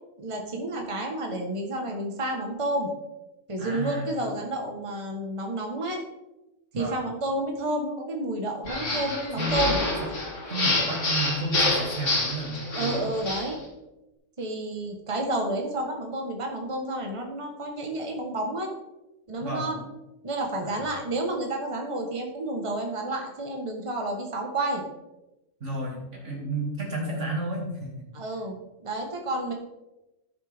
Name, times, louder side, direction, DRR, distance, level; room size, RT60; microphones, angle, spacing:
voice 1, 0.2-2.9 3.5-6.0 6.7-9.8 12.8-13.6 14.4-18.7 19.3-19.8 20.2-24.8 28.1-29.5, right 1 dB, 25° right, 2 dB, 1.4 m, -30 dB
voice 2, 3.6-4.2 6.7-7.0 8.6-9.6 10.5-13.2 19.4-19.7 20.6-20.8 25.6-27.9, right 1 dB, 80° right, -2 dB, 2.8 m, -32 dB
sound 1, 8.7-13.5, left 2 dB, 90° left, 2.6 m, -27 dB
14.0 x 6.8 x 3.5 m, 0.98 s
omnidirectional pair, 1.2 m